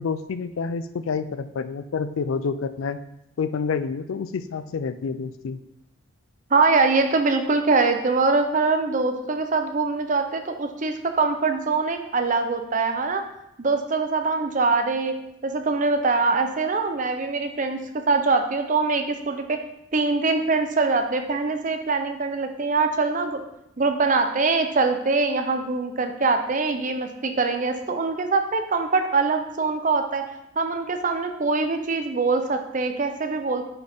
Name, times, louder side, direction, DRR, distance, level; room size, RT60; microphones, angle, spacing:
voice 1, 0.0-3.0 3.4-5.6, left 5 dB, 75° left, 12 dB, 0.4 m, -28 dB
voice 2, 6.5-13.2 13.6-15.1 15.4-19.6 19.9-23.4 23.8-30.2 30.6-33.6, right 3 dB, 35° right, 7 dB, 0.6 m, -23 dB
9.8 x 4.1 x 3.5 m, 0.86 s
head